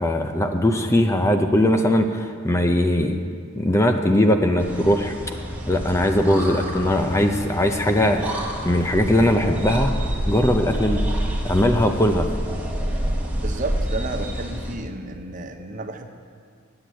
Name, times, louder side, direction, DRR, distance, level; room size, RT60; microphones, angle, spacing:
voice 1, 0.0-3.2 3.5-5.4 5.7-9.9 10.3-11.0 11.4-12.3, left 1 dB, 15° left, 5 dB, 0.5 m, -20 dB
sound 1, 4.6-14.7, equal, 5° right, 1.1 m, -28 dB
voice 2, 13.4-16.1, right 2 dB, 35° right, 5 dB, 0.6 m, -32 dB
8.5 x 7.8 x 9.1 m, 2.1 s
head